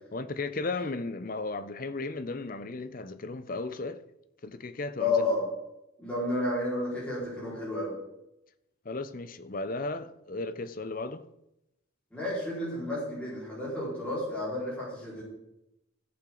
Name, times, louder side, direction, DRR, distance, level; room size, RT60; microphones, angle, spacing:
voice 1, 0.1-4.0 4.4-5.2 8.8-11.2, left 3 dB, 40° left, 0.6 m, -35 dB
voice 2, 5.0-5.5 6.0-8.0 12.1-15.2, left 2 dB, 5° left, 4.5 m, -31 dB
13.5 x 8.6 x 3.9 m
head